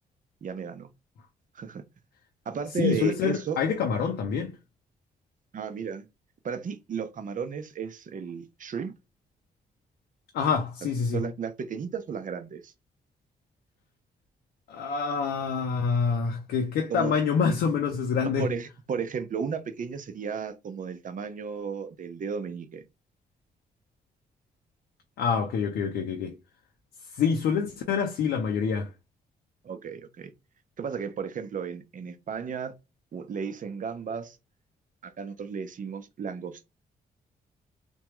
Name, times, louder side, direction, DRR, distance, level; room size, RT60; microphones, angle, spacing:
voice 1, 0.4-0.9 1.5-1.8 2.5-3.6 5.5-6.1 6.4-8.9 11.1-12.7 16.9-17.2 18.4-22.8 29.6-30.3 30.8-32.7 33.1-34.4 35.0-36.6, right 6 dB, 55° right, 0.7 m, -34 dB
voice 2, 2.8-4.5 10.3-11.3 14.7-18.5 25.2-26.3 27.1-28.9, left 6 dB, 85° left, 0.6 m, -26 dB
3.4 x 2.3 x 3.0 m
supercardioid pair, 55°, 17 cm